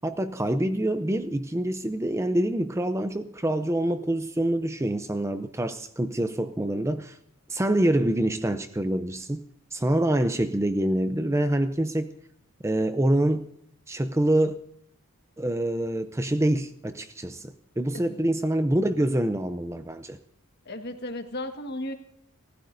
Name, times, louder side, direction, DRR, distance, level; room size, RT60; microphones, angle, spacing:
voice 1, 0.0-7.2 7.5-9.4 9.7-12.1 12.6-13.5 13.9-14.6 15.4-20.2, right 1 dB, 15° right, 10 dB, 0.5 m, -26 dB
voice 2, 17.9-18.3 20.7-21.9, left 1 dB, 50° left, 6 dB, 1.6 m, -35 dB
29.0 x 15.5 x 2.6 m, 0.74 s
head